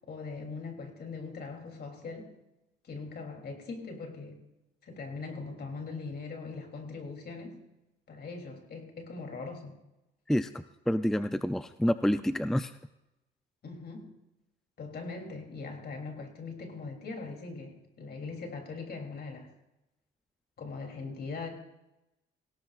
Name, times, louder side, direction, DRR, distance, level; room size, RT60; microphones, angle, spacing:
voice 1, 0.1-2.3 2.8-4.4 4.8-7.6 8.1-9.8 13.6-14.1 14.8-19.5 20.6-21.5, left 4 dB, 55° left, 3 dB, 3.3 m, -41 dB
voice 2, 10.3-12.7, equal, ahead, 11 dB, 0.5 m, -28 dB
18.5 x 17.0 x 2.5 m, 0.94 s
cardioid pair, 90°, 20 cm